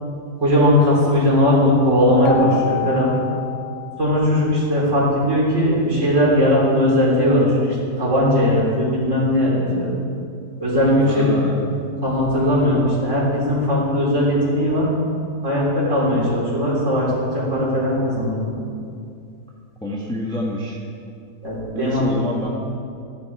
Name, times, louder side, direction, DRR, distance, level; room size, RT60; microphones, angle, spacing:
voice 1, 0.4-3.1 4.0-9.9 10.6-11.3 11.7-14.9 15.4-18.5 21.4-22.0, left 1 dB, 45° right, -6 dB, 4.0 m, -18 dB
Keyboard (musical), 2.2-4.9, left 12 dB, 85° left, 1.4 m, -29 dB
voice 2, 11.1-11.6 19.8-20.8 21.7-22.5, left 1 dB, 5° left, -3 dB, 1.2 m, -27 dB
14.0 x 11.0 x 4.8 m, 2.4 s
omnidirectional pair, 1.8 m